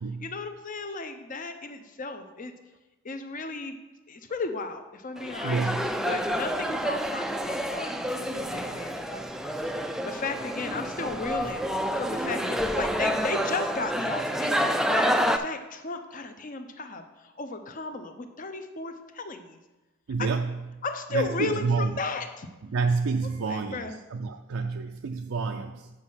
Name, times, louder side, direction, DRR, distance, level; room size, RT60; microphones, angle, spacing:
voice 1, 0.2-2.5 3.0-3.8 4.1-5.6 5.9-11.7 12.0-19.6 20.8-22.5 23.4-24.0, left 3 dB, 40° left, 7 dB, 0.7 m, -35 dB
sound 1, 5.2-15.4, equal, ahead, 0.3 m, -28 dB
voice 2, 5.4-5.9 20.1-20.8 21.1-21.9 22.7-25.9, right 4 dB, 70° right, 4 dB, 0.4 m, -29 dB
8.0 x 5.2 x 5.6 m, 1.1 s
head